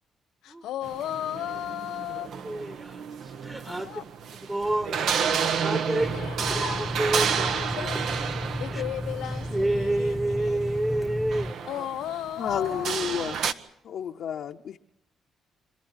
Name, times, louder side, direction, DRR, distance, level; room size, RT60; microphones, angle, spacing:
voice 1, 0.4-2.3 3.6-4.0 6.1-10.8 11.6-13.0, left 12 dB, 85° left, 1.2 m, -36 dB
sound 1, 0.8-13.5, right 7 dB, 75° right, 1.2 m, -31 dB
voice 2, 2.4-3.9 4.5-6.3 6.5-7.5 7.8-7.9 8.7-8.8 9.5-11.9, right 1 dB, 20° right, 1.5 m, -29 dB
Water tap faucet / Sink (filling or washing), 6.0-11.5, equal, ahead, 1.2 m, -34 dB
voice 3, 12.4-13.4 13.8-14.8, left 8 dB, 65° left, 0.8 m, -31 dB
26.5 x 13.5 x 9.7 m
cardioid pair, 90°, 0 cm